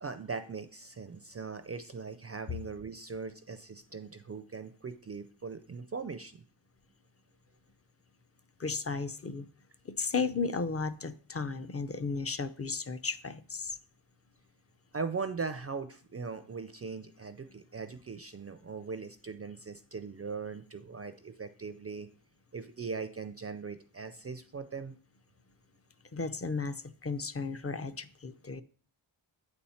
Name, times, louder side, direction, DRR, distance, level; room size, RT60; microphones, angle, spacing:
voice 1, 0.0-6.4 14.9-22.1 22.5-24.9, right 5 dB, 30° right, 9 dB, 0.4 m, -40 dB
voice 2, 8.6-9.5 9.8-13.8 26.1-28.6, left 4 dB, 30° left, 11 dB, 0.5 m, -34 dB
8.2 x 4.3 x 5.6 m, 0.43 s
wide cardioid pair, 115°, 48 cm